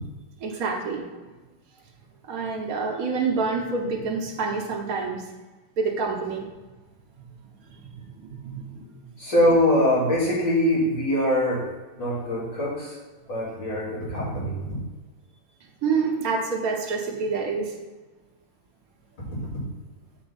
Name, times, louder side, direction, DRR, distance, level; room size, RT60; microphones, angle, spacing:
voice 1, 0.4-1.1 2.2-5.3 5.8-6.5 7.7-8.8 15.8-17.7, right 4 dB, 55° right, -1 dB, 1.5 m, -27 dB
voice 2, 9.2-11.7 12.0-13.0 13.3-14.6, left 1 dB, 70° left, -7 dB, 3.6 m, -23 dB
7.1 x 4.5 x 5.8 m, 1.2 s
omnidirectional pair, 2.1 m